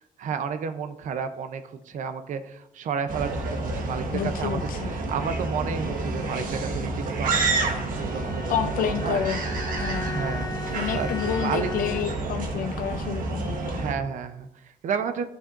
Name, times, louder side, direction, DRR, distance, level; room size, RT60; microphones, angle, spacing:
voice 1, 0.2-9.2 10.0-10.5 10.9-11.7 13.7-15.2, right 6 dB, 60° right, 9 dB, 0.6 m, -32 dB
sound 1, 3.1-13.9, right 2 dB, 90° right, 1.5 m, -29 dB
voice 2, 4.1-4.9 8.5-9.4 9.8-10.2 10.7-13.8, left 8 dB, 80° left, 8 dB, 0.5 m, -29 dB
Bowed string instrument, 7.9-12.4, left 4 dB, 25° left, 0.4 m, -38 dB
14.0 x 6.2 x 2.5 m, 0.87 s
wide cardioid pair, 160°, 14 cm